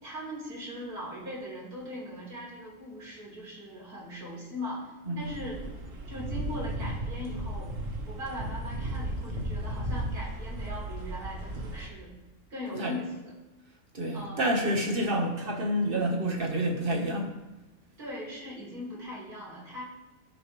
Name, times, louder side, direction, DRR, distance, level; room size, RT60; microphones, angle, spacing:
voice 1, 0.0-5.7 6.1-7.7 8.1-12.1 12.5-13.3 14.1-14.5 18.0-19.8, left 1 dB, 80° right, -5 dB, 4.6 m, -40 dB
sound 1, 5.2-11.9, right 1 dB, 55° right, 1.9 m, -35 dB
voice 2, 13.9-17.3, right 1 dB, 35° right, 1 dB, 1.8 m, -28 dB
16.0 x 6.8 x 3.5 m, 1.0 s
omnidirectional pair, 1.6 m